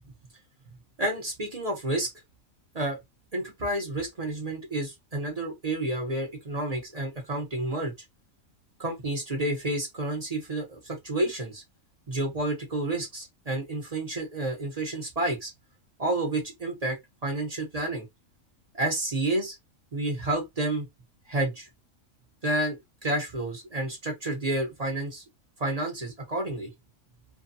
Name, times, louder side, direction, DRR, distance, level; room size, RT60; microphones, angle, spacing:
voice 1, 1.0-2.1 2.7-3.0 3.3-7.9 8.8-11.6 12.1-15.5 16.0-16.9 17.2-18.0 18.7-19.6 19.9-20.9 21.3-21.7 22.4-25.2 25.6-26.7, right 1 dB, 35° right, 0.7 m, -30 dB
2.6 x 2.5 x 2.6 m
omnidirectional pair, 1.4 m